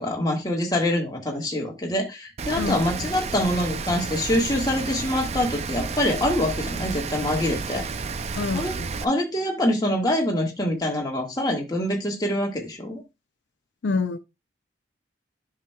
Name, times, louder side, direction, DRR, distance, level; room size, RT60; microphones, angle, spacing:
voice 1, 0.0-7.8 8.5-8.7 9.0-13.0, left 1 dB, 20° left, 1.7 m, -25 dB
Rain, 2.4-9.0, right 4 dB, 35° right, 0.4 m, -31 dB
voice 2, 2.5-3.1 8.4-9.1 13.8-14.2, left 4 dB, 90° left, 0.5 m, -28 dB
10.0 x 6.0 x 2.3 m
head